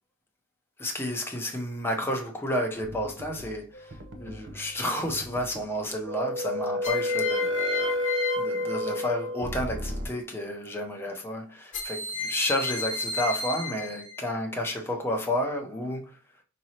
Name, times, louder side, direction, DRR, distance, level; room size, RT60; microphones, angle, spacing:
voice 1, 0.8-16.2, left 1 dB, 10° left, 0.7 m, -31 dB
sound 1, 2.8-3.6 3.9-4.7 5.0-5.6 6.1-10.1, left 1 dB, 55° right, 0.7 m, -31 dB
sound 2, 3.7-4.3 6.8-9.5 11.7-14.3, left 4 dB, 35° left, 1.0 m, -33 dB
5.1 x 3.0 x 2.9 m
head